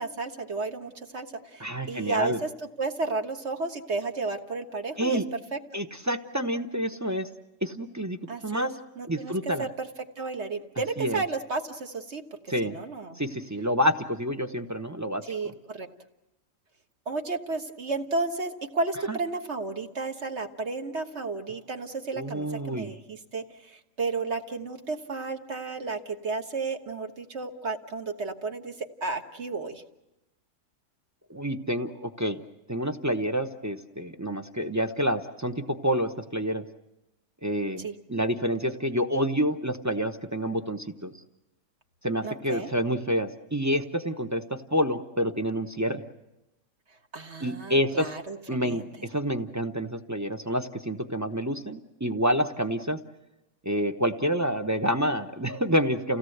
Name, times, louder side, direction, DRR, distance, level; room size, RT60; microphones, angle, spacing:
voice 1, 0.0-2.5 2.8-5.2 5.5-5.6 8.3-8.7 9.0-9.9 10.2-13.2 15.3-15.9 17.1-29.8 37.8-37.9 42.2-42.7 47.1-48.9, right 3 dB, 45° right, 5 dB, 1.5 m, -33 dB
voice 2, 1.6-2.4 5.0-5.2 5.7-7.3 7.6-8.8 9.1-9.7 11.0-11.2 12.5-12.8 13.2-15.5 19.1-19.2 22.1-22.9 31.3-32.4 32.7-36.6 37.4-41.1 42.0-46.0 47.4-48.1 48.5-53.0 53.6-56.2, equal, 20° right, 7 dB, 0.5 m, -28 dB
29.5 x 17.0 x 8.0 m, 0.98 s
omnidirectional pair, 1.8 m